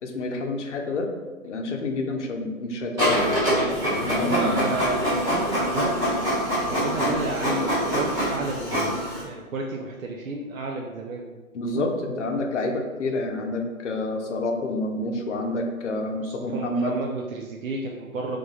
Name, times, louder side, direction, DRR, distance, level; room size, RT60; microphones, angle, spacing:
voice 1, 0.0-1.1 1.4-3.5 4.0-4.7 7.0-7.1 11.5-17.0, left 2 dB, 55° left, 4 dB, 0.8 m, -28 dB
Printer, 3.0-9.2, equal, 10° right, 0.8 m, -25 dB
voice 2, 4.0-6.2 6.5-11.4 11.8-11.9 16.2-18.4, right 3 dB, 70° right, 1 dB, 0.6 m, -32 dB
3.4 x 3.3 x 3.8 m, 1.4 s
hypercardioid pair, 150°, 42 cm